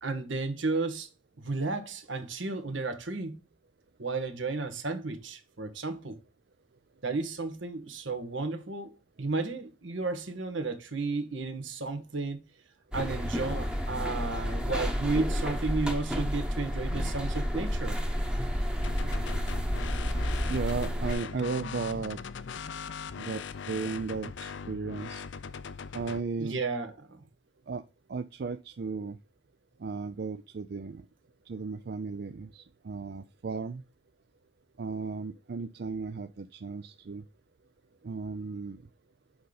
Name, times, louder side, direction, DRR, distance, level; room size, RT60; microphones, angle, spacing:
voice 1, 0.0-1.1 1.4-3.4 4.0-6.2 7.0-12.4 12.9-18.0 26.4-27.2, right 3 dB, 75° right, 1.6 m, -33 dB
sound 1, 12.9-21.1, equal, 5° right, 1.0 m, -31 dB
sound 2, 18.8-26.2, left 6 dB, 65° left, 0.5 m, -40 dB
voice 2, 20.5-22.2 23.2-25.2 25.9-26.6 27.7-27.8 28.1-29.2 29.8-31.0 31.5-33.8 34.8-37.2 38.0-38.8, right 4 dB, 55° right, 0.4 m, -35 dB
7.9 x 5.1 x 4.0 m
head